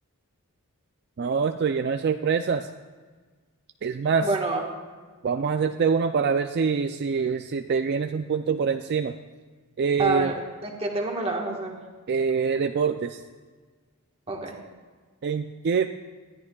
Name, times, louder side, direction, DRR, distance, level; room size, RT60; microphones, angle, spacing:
voice 1, 1.2-2.7 3.8-4.3 5.2-9.1 9.8-10.3 12.1-13.2 15.2-15.9, right 5 dB, 50° right, 7 dB, 0.4 m, -25 dB
voice 2, 4.2-4.6 10.0-11.8 14.3-14.6, right 3 dB, 25° right, 0 dB, 1.4 m, -28 dB
19.5 x 11.0 x 2.3 m, 1.5 s
head